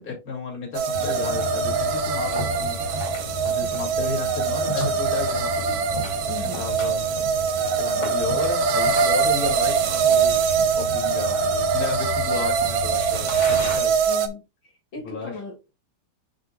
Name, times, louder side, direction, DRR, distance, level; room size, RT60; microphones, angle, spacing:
voice 1, 0.0-2.8 3.4-7.1 7.8-14.0 15.0-15.3, left 5 dB, 45° left, 2.9 m, -33 dB
sound 1, 0.7-14.3, right 6 dB, 80° right, 1.6 m, -23 dB
sound 2, 0.9-13.8, left 2 dB, 90° left, 3.0 m, -34 dB
voice 2, 6.3-6.6 14.1-15.7, left 3 dB, 70° left, 2.6 m, -38 dB
10.5 x 4.0 x 2.3 m
omnidirectional pair, 2.1 m